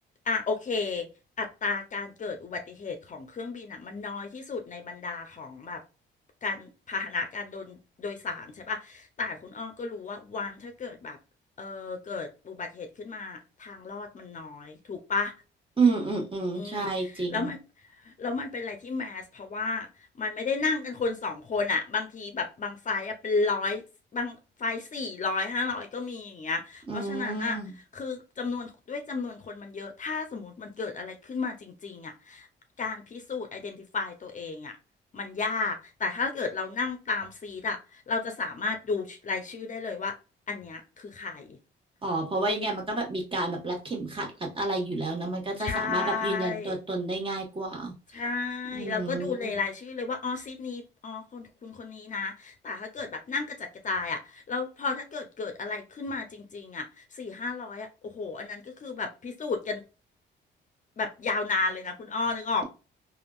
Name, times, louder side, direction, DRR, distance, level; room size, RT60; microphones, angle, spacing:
voice 1, 0.3-1.1 1.4-5.8 6.4-11.2 11.6-15.3 16.5-16.9 17.3-17.6 18.0-19.9 20.2-23.8 24.1-27.6 27.9-32.5 32.8-34.7 35.1-40.1 40.5-41.6 45.6-46.7 48.1-53.5 53.8-56.9 57.2-57.9 58.1-59.8 61.0-62.6, left 4 dB, 40° left, 0.7 m, -33 dB
voice 2, 15.8-17.5 26.8-27.7 42.0-47.9 48.7-49.6, right 3 dB, 25° right, 1.4 m, -30 dB
3.5 x 2.4 x 2.3 m
cardioid pair, 90°, 20 cm